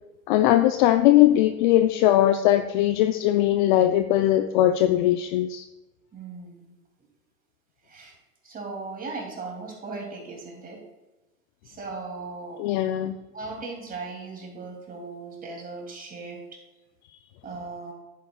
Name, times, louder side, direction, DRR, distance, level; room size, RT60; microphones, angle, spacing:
voice 1, 0.3-5.6 12.6-13.2, left 13 dB, 35° left, 9 dB, 0.4 m, -20 dB
voice 2, 6.1-6.7 7.8-8.2 8.4-10.8 11.6-12.6 13.3-16.4 17.4-17.9, right 3 dB, 20° right, 1 dB, 2.5 m, -37 dB
10.5 x 9.2 x 2.3 m, 1.1 s
hypercardioid pair, 105°, 43 cm